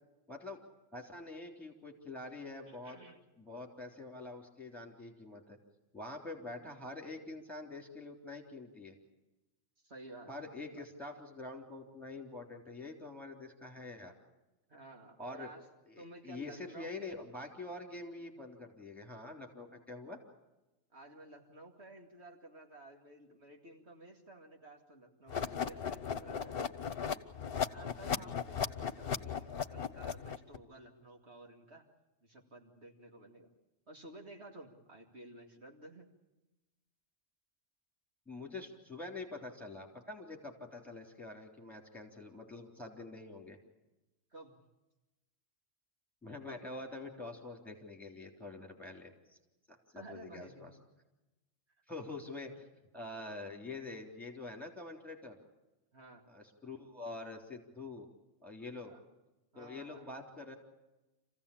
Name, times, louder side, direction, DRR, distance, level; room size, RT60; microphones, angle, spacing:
voice 1, 0.3-0.6 0.9-3.0 3.4-5.6 5.9-8.9 10.3-14.1 15.2-15.5 15.9-20.2 38.3-43.6 46.2-49.4 49.7-50.7 51.9-55.4 56.3-58.1 58.4-58.9 59.6-60.5, left 2 dB, ahead, 1 dB, 3.6 m, -46 dB
voice 2, 2.7-3.2 9.8-10.8 14.7-15.7 16.0-17.2 20.9-26.6 27.6-31.8 32.2-33.5 33.9-36.1 44.3-44.6 49.9-50.8 55.9-56.3 58.8-59.0 59.5-60.1, right 1 dB, 70° right, 2 dB, 2.5 m, -53 dB
sound 1, 25.3-30.6, left 7 dB, 55° left, 1.1 m, -37 dB
27.0 x 16.0 x 8.7 m, 1.0 s
omnidirectional pair, 1.2 m